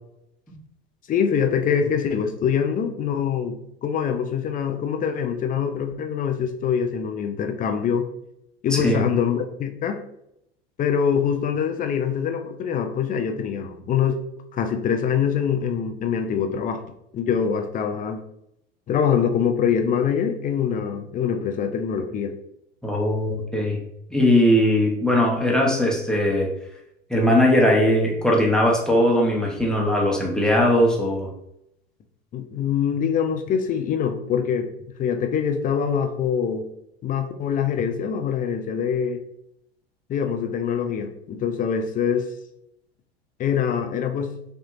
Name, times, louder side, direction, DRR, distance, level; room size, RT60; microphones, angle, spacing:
voice 1, 1.1-8.1 8.6-10.0 10.8-14.2 14.5-16.8 17.1-18.2 18.9-22.3 32.3-34.7 35.0-36.7 37.0-39.2 40.1-42.3 43.4-44.3, left 7 dB, 25° left, 6 dB, 0.5 m, -24 dB
voice 2, 8.7-9.0 22.8-23.8 24.1-26.5 27.1-31.3, left 1 dB, ahead, -2 dB, 1.1 m, -19 dB
5.6 x 2.7 x 2.6 m, 0.78 s
figure-of-eight pair, 80°, 32 cm